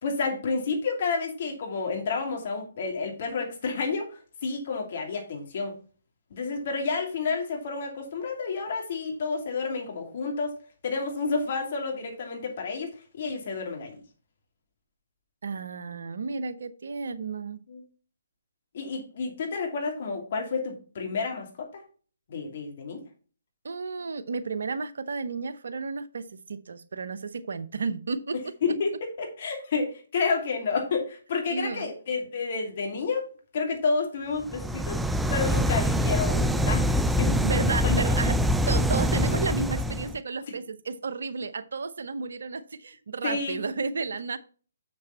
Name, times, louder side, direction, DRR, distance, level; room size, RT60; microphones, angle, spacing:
voice 1, 0.0-5.8 6.3-10.5 10.8-14.0 17.7-17.8 18.7-21.8 22.3-23.0 28.6-33.2 33.5-35.0 35.3-36.9 37.2-37.4 37.8-37.9 43.2-43.6, left 4 dB, 50° left, 2 dB, 2.7 m, -30 dB
voice 2, 15.4-17.6 23.6-28.4 31.5-31.9 37.4-38.4 38.7-44.4, right 4 dB, 65° right, 13 dB, 0.7 m, -32 dB
sound 1, 34.4-40.2, equal, 5° right, 0.3 m, -24 dB
6.9 x 6.6 x 4.0 m, 0.39 s
figure-of-eight pair, 135°, 0 cm